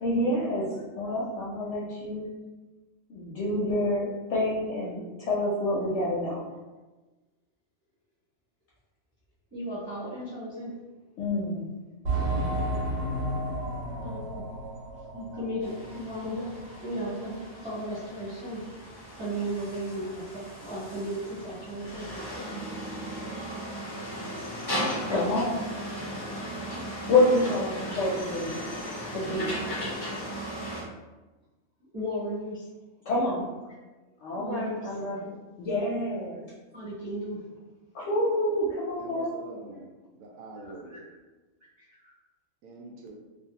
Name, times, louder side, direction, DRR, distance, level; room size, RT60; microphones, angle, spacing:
voice 1, 0.0-0.7 1.0-2.3 3.1-6.4 11.2-11.7 25.1-25.6 27.1-28.7 29.1-29.5 33.1-33.5 34.2-35.3 35.6-36.4 37.9-39.3, left 1 dB, 65° left, -6 dB, 0.8 m, -27 dB
voice 2, 9.5-10.7 14.0-14.4 15.1-22.5 26.5-26.6 31.9-32.7 34.3-34.8 36.7-37.4 40.9-41.0 41.8-42.1, equal, 20° right, -13 dB, 0.9 m, -35 dB
sound 1, 12.0-16.3 16.6-16.7 17.3-17.4, right 1 dB, 60° right, 0.9 m, -32 dB
sound 2, 15.6-30.8, equal, 35° left, 0.4 m, -37 dB
voice 3, 38.9-41.0 42.6-43.1, right 2 dB, 85° right, 0 dB, 1.1 m, -44 dB
2.5 x 2.3 x 2.8 m, 1.2 s
omnidirectional pair, 1.5 m